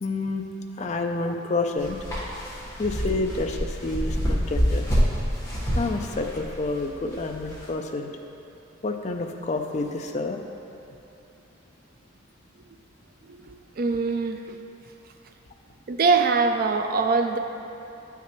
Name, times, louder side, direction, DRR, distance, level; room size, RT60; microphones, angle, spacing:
voice 1, 0.0-0.5 0.8-2.0 2.8-4.9 5.7-8.1 8.8-10.4, left 3 dB, 35° left, 4 dB, 0.4 m, -28 dB
sound 1, 1.8-7.7, equal, 15° left, 1.3 m, -27 dB
voice 2, 13.4-14.6 15.9-17.4, right 4 dB, 45° right, 6 dB, 0.3 m, -23 dB
9.2 x 5.8 x 3.0 m, 2.9 s
head